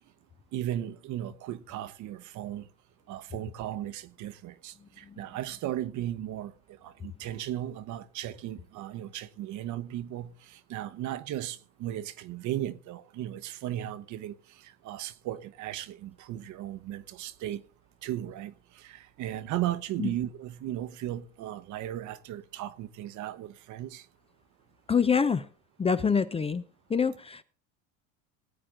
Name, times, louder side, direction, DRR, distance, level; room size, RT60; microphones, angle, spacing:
voice 1, 0.5-2.7 3.1-6.5 6.8-14.3 14.6-17.6 18.0-24.0, right 12 dB, 50° right, 1.0 m, -36 dB
voice 2, 24.9-25.5 25.8-26.6 26.9-27.4, left 6 dB, 15° left, 0.6 m, -26 dB
19.0 x 8.6 x 3.8 m
supercardioid pair, 100°, 39 cm